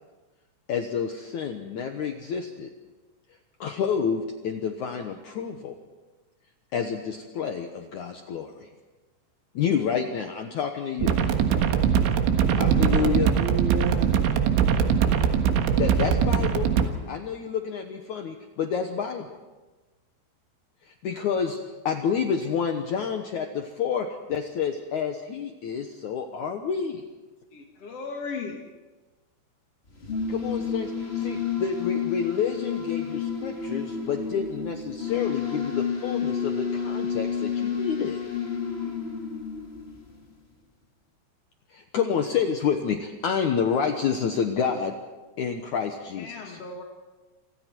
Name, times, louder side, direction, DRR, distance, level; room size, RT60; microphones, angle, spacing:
voice 1, 0.7-2.7 3.6-5.8 6.7-8.7 9.5-11.2 12.5-13.3 15.8-16.7 17.1-19.4 20.9-21.6 21.9-27.0 30.3-38.2 41.7-44.9 45.4-46.6, left 7 dB, 80° left, 4 dB, 1.7 m, -29 dB
sound 1, 11.0-16.9, right 7 dB, 80° right, 3.9 m, -22 dB
voice 2, 12.6-14.2, right 7 dB, 65° right, 5 dB, 2.9 m, -32 dB
voice 3, 27.5-28.6 38.8-39.0 46.2-46.8, left 4 dB, 50° left, 1 dB, 1.9 m, -36 dB
sound 2, 29.9-40.3, left 6 dB, 25° left, 1.4 m, -30 dB
28.5 x 25.5 x 4.6 m, 1.2 s
omnidirectional pair, 5.4 m